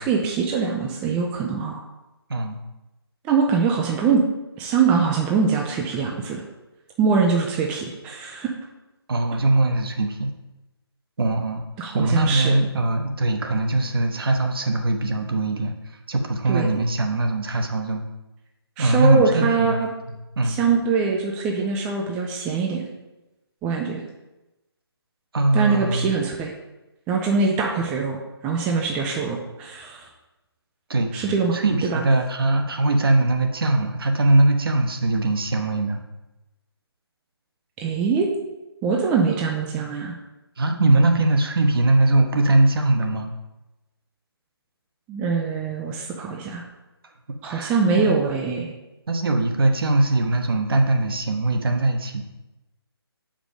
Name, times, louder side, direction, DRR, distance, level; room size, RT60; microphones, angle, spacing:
voice 1, 0.0-1.8 3.2-4.2 4.6-6.4 7.0-8.5 11.8-12.6 16.5-16.7 18.8-19.9 20.4-22.8 23.6-24.0 25.5-26.5 27.1-28.2 28.4-30.1 31.1-31.6 31.9-32.0 37.8-38.3 38.8-40.1 45.1-46.6 47.4-48.7, right 5 dB, 10° right, 0 dB, 0.4 m, -23 dB
voice 2, 9.1-10.3 11.2-11.6 11.9-15.7 16.1-18.0 18.8-19.8 20.4-20.6 25.3-26.1 30.9-31.1 31.5-36.0 40.6-43.3 47.3-48.1 49.1-52.2, right 2 dB, 60° right, 4 dB, 1.1 m, -21 dB
6.0 x 5.1 x 5.2 m, 1.0 s
figure-of-eight pair, 150°, 13 cm